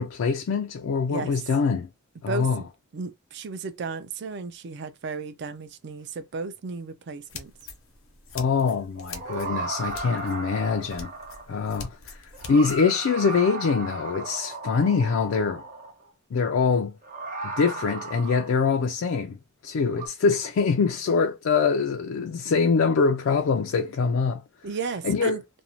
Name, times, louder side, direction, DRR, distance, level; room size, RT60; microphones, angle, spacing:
voice 1, 0.0-1.9 2.2-2.6 8.3-11.1 11.5-12.2 12.5-15.6 16.3-17.0 17.4-19.4 19.6-24.4 25.0-25.4, left 5 dB, 75° left, 0.3 m, -24 dB
voice 2, 2.3-2.7 2.9-7.5 24.6-25.4, right 4 dB, 55° right, 0.4 m, -34 dB
sound 1, 7.3-12.8, left 4 dB, 90° left, 0.8 m, -44 dB
sound 2, 9.0-11.7 12.3-16.1 17.0-18.9 19.9-20.1, right 3 dB, 40° right, 0.9 m, -36 dB
2.5 x 2.0 x 2.9 m
head